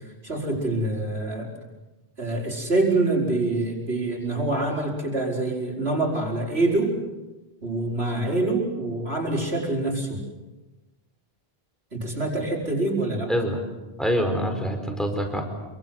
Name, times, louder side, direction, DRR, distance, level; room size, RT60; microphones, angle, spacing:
voice 1, 0.2-1.5 2.2-7.0 7.6-10.2 11.9-13.3, right 2 dB, 90° right, -1 dB, 5.6 m, -25 dB
voice 2, 13.3-13.6 14.0-15.4, equal, ahead, 4 dB, 4.8 m, -25 dB
28.0 x 23.5 x 8.0 m, 1.1 s
omnidirectional pair, 1.0 m